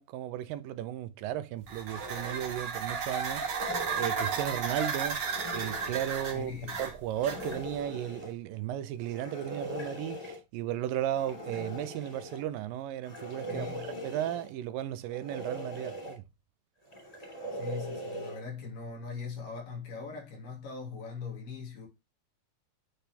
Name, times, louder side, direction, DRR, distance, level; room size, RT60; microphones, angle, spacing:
voice 1, 0.0-5.2 5.5-6.5 6.8-16.2, right 11 dB, 90° right, 2.4 m, -35 dB
sound 1, 1.6-7.8, right 5 dB, 50° right, 1.7 m, -34 dB
sound 2, 1.9-2.6 3.3-4.6 5.1-6.4 7.2-8.3 9.0-10.4 11.1-12.4 13.0-14.5 15.1-16.2 16.8-18.4, equal, 15° left, 2.2 m, -41 dB
voice 2, 6.3-6.8 7.4-7.5 13.5-13.9 17.2-21.9, left 5 dB, 75° left, 4.1 m, -41 dB
9.2 x 4.2 x 3.4 m
omnidirectional pair, 3.9 m